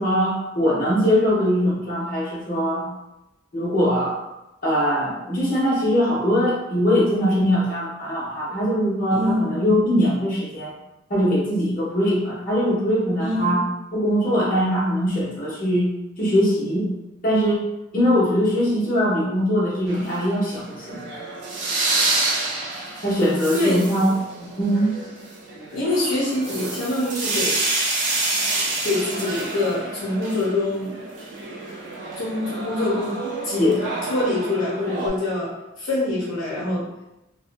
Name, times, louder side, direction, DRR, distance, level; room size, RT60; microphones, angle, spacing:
voice 1, 0.0-2.9 3.5-4.2 4.6-10.7 11.1-13.7 13.9-15.9 16.2-16.9 17.2-17.6 17.9-21.0 23.0-24.1 24.4-24.9 33.6-33.8, equal, 45° left, -8 dB, 0.9 m, -21 dB
voice 2, 9.1-9.5 13.2-13.6 23.5-23.9 25.7-27.6 28.8-30.9 32.2-33.2 33.4-33.6 34.1-36.9, left 2 dB, 80° left, -6 dB, 0.7 m, -25 dB
sound 1, 19.9-35.1, right 2 dB, 60° right, 0.5 m, -28 dB
2.6 x 2.1 x 2.5 m, 0.94 s
head